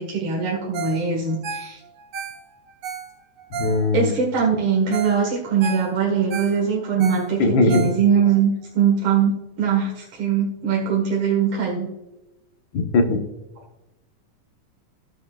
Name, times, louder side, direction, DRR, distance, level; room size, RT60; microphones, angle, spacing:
voice 1, 0.0-1.8 3.9-11.9, right 6 dB, 50° right, -2 dB, 1.9 m, -21 dB
Ringtone, 0.7-1.0 1.3-4.2 4.6-4.7 4.9-5.2 5.5-8.3 8.8-8.9, right 6 dB, 70° right, 1.3 m, -33 dB
voice 2, 3.5-4.2 7.4-7.9 12.7-13.2, left 3 dB, 75° left, 4 dB, 1.1 m, -19 dB
18.5 x 7.7 x 2.4 m, 0.96 s
omnidirectional pair, 3.8 m